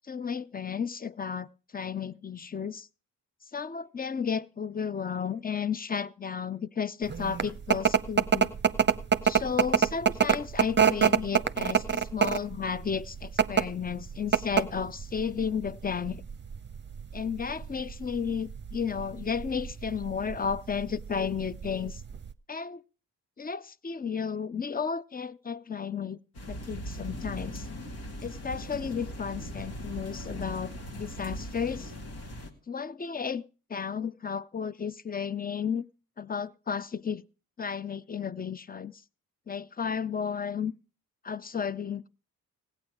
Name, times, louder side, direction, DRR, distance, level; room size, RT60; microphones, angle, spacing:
voice 1, 0.1-2.9 3.5-8.5 9.2-16.2 17.1-22.0 22.5-22.8 23.4-26.2 26.5-27.7 28.2-31.9 32.7-33.4 33.7-35.9 36.2-37.2 37.6-39.0 39.5-40.7 41.2-42.1, left 6 dB, 25° left, 0.5 m, -33 dB
sound 1, 7.1-22.3, right 7 dB, 30° right, 0.7 m, -27 dB
sound 2, 26.3-32.5, equal, 75° left, 2.1 m, -39 dB
16.5 x 8.9 x 4.7 m
supercardioid pair, 45°, 38 cm